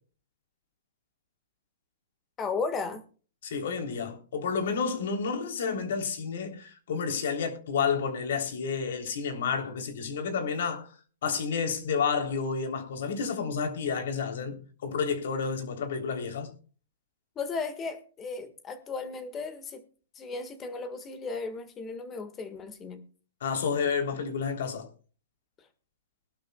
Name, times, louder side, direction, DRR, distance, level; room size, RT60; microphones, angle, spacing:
voice 1, 2.4-3.0 17.3-19.8 20.1-23.0, left 4 dB, 20° left, 1.7 m, -35 dB
voice 2, 3.4-10.9 11.2-16.5 23.4-24.9, left 6 dB, 70° left, 3.4 m, -30 dB
22.0 x 12.0 x 2.3 m
hypercardioid pair, 155°, 0 cm